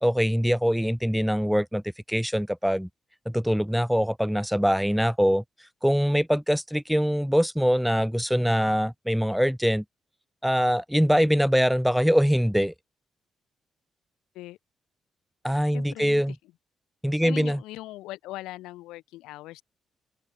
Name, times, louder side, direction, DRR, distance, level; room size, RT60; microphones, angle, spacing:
voice 1, 0.0-1.8 2.1-2.9 3.3-5.4 5.8-9.8 10.4-12.7 15.4-16.3 17.0-17.6, equal, ahead, 0.4 m, -23 dB
voice 2, 15.7-16.4 17.2-19.6, left 17 dB, 80° left, 0.9 m, -40 dB
hypercardioid pair, 45°, 0 cm